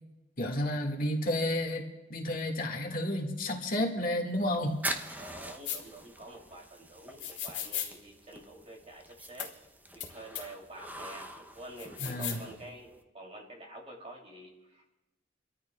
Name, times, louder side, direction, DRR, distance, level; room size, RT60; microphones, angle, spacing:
voice 1, 0.4-4.8 12.0-12.4, left 1 dB, 50° left, 1 dB, 2.0 m, -31 dB
sound 1, 4.3-13.0, right 1 dB, 10° right, 0.8 m, -44 dB
voice 2, 5.1-9.5 9.9-14.9, right 1 dB, 35° right, -1 dB, 3.0 m, -48 dB
sound 2, 5.6-5.8 7.2-7.9 9.4-9.5 10.0-10.1 10.3-10.4 11.8-12.4, left 10 dB, 70° left, 3.0 m, -36 dB
29.5 x 13.5 x 2.4 m, 1.1 s
head